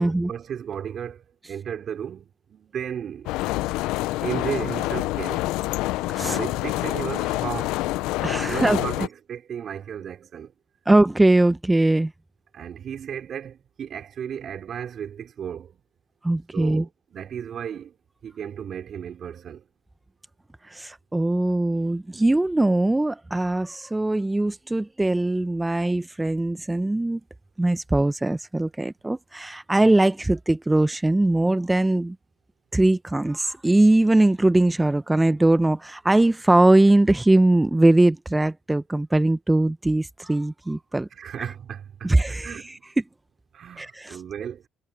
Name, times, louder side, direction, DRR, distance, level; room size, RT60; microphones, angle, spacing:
voice 1, 0.0-3.3 4.2-5.4 6.2-7.8 8.5-10.5 12.5-15.8 16.5-17.9 18.2-19.6 41.1-42.1 42.4-42.9 43.5-44.6, right 8 dB, 55° right, 5.4 m, -34 dB
sound 1, 3.3-9.1, left 18 dB, 75° left, 0.8 m, -27 dB
voice 2, 8.2-8.8 10.9-12.1 16.2-16.8 20.6-27.2 27.6-32.2 32.7-41.1 42.0-42.6 43.8-44.2, right 2 dB, 15° right, 1.0 m, -21 dB
hypercardioid pair, 60°, 0 cm